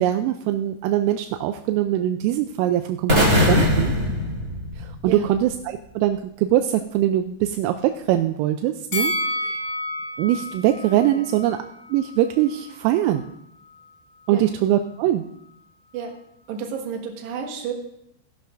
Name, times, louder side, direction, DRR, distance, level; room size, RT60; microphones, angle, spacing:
voice 1, 0.0-3.9 4.8-9.6 10.2-11.6 11.9-13.2 14.3-15.2, right 12 dB, 85° right, 8 dB, 3.1 m, -22 dB
sound 1, 3.1-5.2, left 1 dB, 25° right, 1.9 m, -20 dB
Bell, 8.9-12.1 12.5-12.6, left 1 dB, 45° left, 1.6 m, -29 dB
voice 2, 16.5-17.7, right 6 dB, 65° right, 2 dB, 3.4 m, -31 dB
18.0 x 11.0 x 2.5 m, 0.78 s
omnidirectional pair, 5.8 m